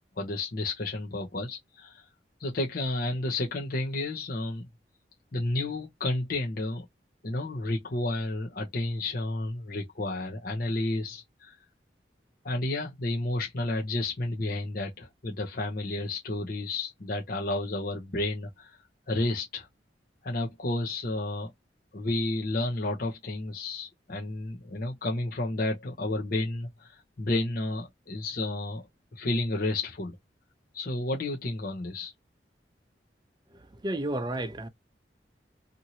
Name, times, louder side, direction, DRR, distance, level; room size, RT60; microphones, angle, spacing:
voice 1, 0.2-2.1 2.4-4.7 5.3-6.8 7.2-11.6 12.4-18.8 19.1-19.7 20.2-21.5 21.9-28.8 29.1-30.1 30.7-32.1, left 2 dB, 50° left, 0.8 m, -31 dB
voice 2, 33.5-34.7, right 1 dB, 25° right, 0.6 m, -32 dB
3.0 x 2.5 x 2.7 m
head